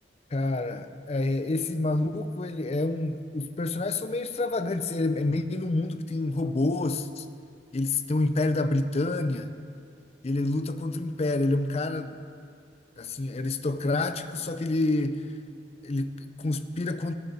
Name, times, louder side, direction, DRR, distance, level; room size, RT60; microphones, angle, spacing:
voice 1, 0.3-7.3 7.7-9.5 10.2-12.2 13.0-15.2 15.8-17.2, left 2 dB, 35° left, 10 dB, 0.5 m, -28 dB
17.5 x 8.7 x 4.1 m, 2.3 s
head